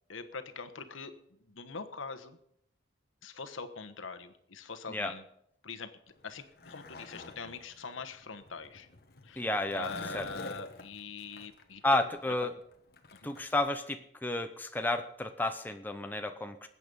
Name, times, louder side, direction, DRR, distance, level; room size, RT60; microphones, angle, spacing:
voice 1, 0.1-2.4 3.2-5.2 5.6-5.9 6.2-8.9 9.2-12.0 12.3-12.5 13.1-13.3, left 4 dB, 80° left, 9 dB, 1.2 m, -43 dB
Skateboard, 6.1-13.6, left 2 dB, 50° left, 1.1 m, -49 dB
voice 2, 9.4-10.2 11.8-12.5 13.2-16.7, left 2 dB, 10° left, 6 dB, 0.7 m, -32 dB
20.5 x 8.4 x 5.4 m, 0.74 s
head